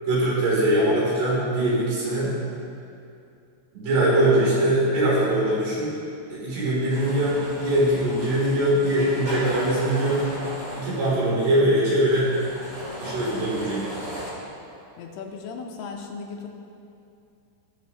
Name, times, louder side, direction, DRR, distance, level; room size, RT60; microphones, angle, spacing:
voice 1, 0.1-2.3 3.7-6.0 6.3-10.2 10.7-12.3 13.0-14.0, right 1 dB, 75° right, -7 dB, 5.0 m, -22 dB
voice 2, 0.6-0.9 11.6-11.8 15.0-16.5, left 5 dB, 80° left, 1 dB, 3.0 m, -37 dB
sound 1, 6.9-14.3, equal, 25° right, 2.1 m, -36 dB
19.0 x 7.7 x 2.9 m, 2.6 s
omnidirectional pair, 4.8 m